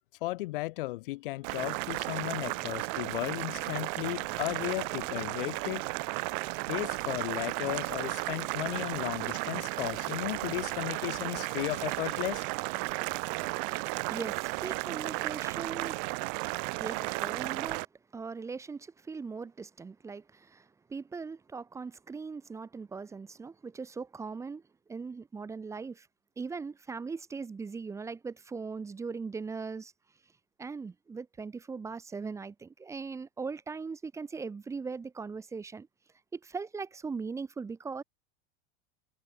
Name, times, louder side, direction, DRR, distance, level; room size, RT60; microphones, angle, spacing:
voice 1, 0.2-5.8 6.7-12.5, left 19 dB, 65° left, 1.6 m, -35 dB
Boiling, 1.4-17.8, right 37 dB, 45° right, 2.6 m, -34 dB
sound 1, 2.5-5.7 6.0-8.4, left 3 dB, 5° left, 5.3 m, -60 dB
voice 2, 13.7-16.0 16.8-17.8 18.1-24.6 24.9-26.1 26.4-29.9 30.6-35.9 36.3-38.0, right 4 dB, 10° right, 1.7 m, -40 dB
supercardioid pair, 170°, 29 cm